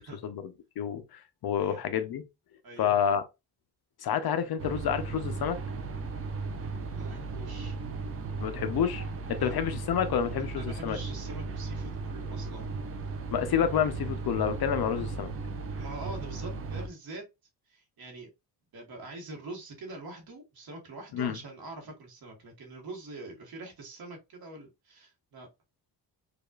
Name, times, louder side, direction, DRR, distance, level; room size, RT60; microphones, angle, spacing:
voice 1, 0.2-2.2 2.8-3.2 4.0-5.6 8.4-9.0 9.3-11.0 13.3-15.3 21.1-21.3, left 8 dB, 60° left, 0.6 m, -29 dB
sound 1, 4.6-16.9, right 4 dB, 35° right, 0.5 m, -36 dB
voice 2, 6.9-7.8 9.4-9.6 10.6-12.7 15.8-17.2 17.7-18.3 18.7-25.5, right 2 dB, 55° right, 1.2 m, -44 dB
4.9 x 2.3 x 2.3 m
wide cardioid pair, 140°, 42 cm